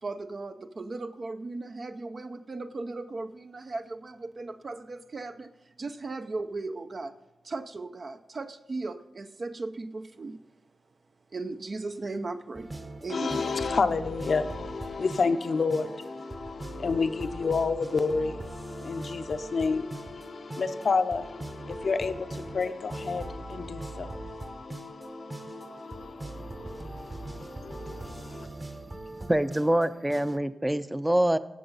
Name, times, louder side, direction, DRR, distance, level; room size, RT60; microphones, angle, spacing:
voice 1, 0.0-7.1 7.4-10.4 11.3-12.7 13.0-13.4, right 3 dB, 50° right, 0.5 m, -37 dB
sound 1, 12.5-30.4, right 2 dB, 30° right, 1.0 m, -41 dB
voice 2, 13.1-28.5, left 4 dB, 65° left, 0.7 m, -30 dB
voice 3, 29.2-31.4, right 1 dB, 10° right, 0.5 m, -25 dB
16.5 x 6.9 x 4.0 m
cardioid pair, 65°, 0 cm